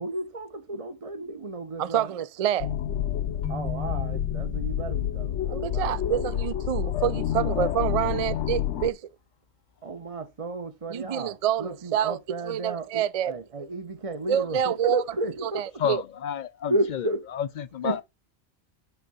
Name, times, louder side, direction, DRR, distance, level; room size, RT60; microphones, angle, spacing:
voice 1, 0.0-2.1 3.5-6.3 8.3-8.4 9.8-15.6 16.7-17.2 17.8-18.0, right 2 dB, 35° right, 0.8 m, -32 dB
voice 2, 1.8-2.8 5.5-9.0 10.9-12.2 12.4-13.4 14.3-15.0 15.4-16.0, right 10 dB, 60° right, 0.3 m, -27 dB
sound 1, 2.6-8.9, left 10 dB, 80° left, 1.0 m, -29 dB
Keyboard (musical), 3.4-5.3, left 3 dB, 5° left, 0.7 m, -39 dB
voice 3, 15.8-18.0, left 9 dB, 50° left, 0.6 m, -30 dB
8.1 x 3.7 x 6.8 m
omnidirectional pair, 1.2 m